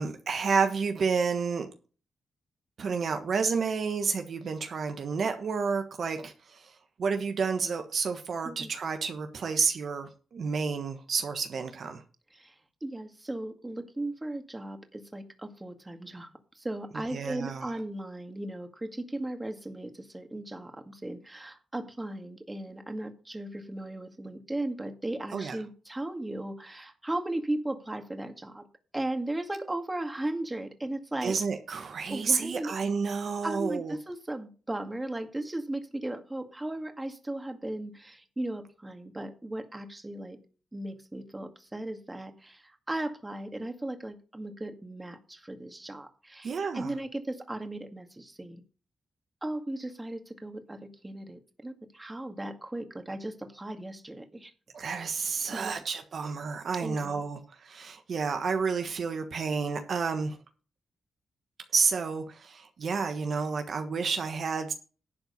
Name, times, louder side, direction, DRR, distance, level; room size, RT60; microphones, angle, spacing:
voice 1, 0.0-1.7 2.8-12.0 17.1-17.8 25.3-25.6 31.2-33.9 46.4-46.9 54.7-60.4 61.7-64.7, right 5 dB, 65° right, 1.3 m, -30 dB
voice 2, 12.3-28.6 28.9-31.4 32.1-32.7 33.4-40.4 40.7-48.6 49.4-54.5 55.5-55.8 56.8-57.2, right 1 dB, 20° right, 2.1 m, -36 dB
11.5 x 4.6 x 8.2 m
supercardioid pair, 50°, 0 cm